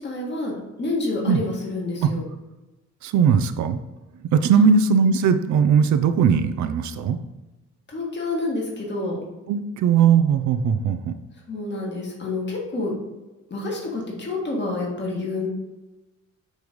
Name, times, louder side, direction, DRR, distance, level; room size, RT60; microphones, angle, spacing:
voice 1, 0.0-2.2 4.5-4.8 7.9-9.2 11.5-12.9 13.5-15.5, left 2 dB, 35° left, -2 dB, 1.9 m, -28 dB
voice 2, 3.0-3.8 4.3-7.2 9.5-11.1, right 7 dB, 70° right, 10 dB, 0.6 m, -19 dB
6.5 x 3.1 x 5.3 m, 1.1 s
cardioid pair, 90°, 30 cm